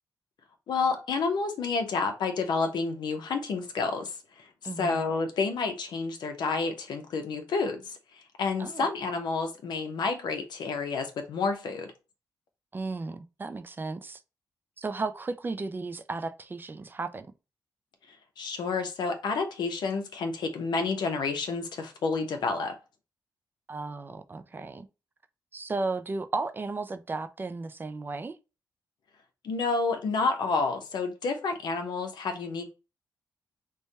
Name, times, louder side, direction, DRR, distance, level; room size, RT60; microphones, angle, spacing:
voice 1, 0.7-4.5 4.8-8.0 8.4-11.9 18.4-22.7 29.4-32.7, left 4 dB, 80° left, 0.7 m, -29 dB
voice 2, 4.6-5.0 8.6-8.9 12.7-14.2 14.8-17.3 23.7-24.9 25.5-28.4, right 3 dB, 30° right, 0.3 m, -34 dB
3.3 x 2.2 x 4.0 m
cardioid pair, 95°, 7 cm